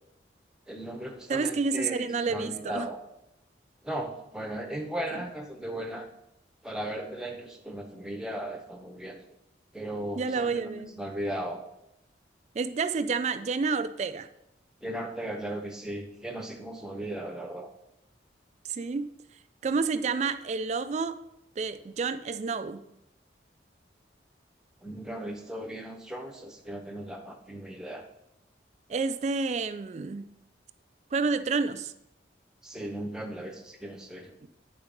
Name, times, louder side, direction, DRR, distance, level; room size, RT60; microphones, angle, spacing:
voice 1, 0.7-3.0 3.8-6.1 6.6-9.2 9.7-11.6 14.8-17.7 24.8-28.0 32.6-34.3, right 1 dB, 5° right, 0.8 m, -37 dB
voice 2, 1.3-2.9 10.2-10.9 12.6-14.3 18.7-19.1 19.6-21.2 21.6-22.8 28.9-30.3 31.1-31.9, right 4 dB, 40° right, 0.3 m, -29 dB
9.6 x 3.9 x 5.1 m
head